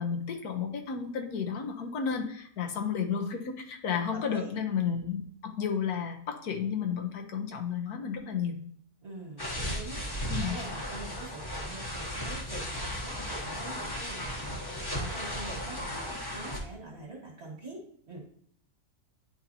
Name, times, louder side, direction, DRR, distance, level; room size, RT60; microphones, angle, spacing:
voice 1, 0.0-8.6 10.3-10.6, left 7 dB, 80° left, 3 dB, 1.4 m, -32 dB
voice 2, 4.1-4.5 9.0-18.3, right 2 dB, 45° right, -1 dB, 1.9 m, -45 dB
sound 1, 9.4-16.6, equal, 20° left, 0.9 m, -35 dB
10.0 x 4.0 x 2.8 m, 0.62 s
omnidirectional pair, 1.6 m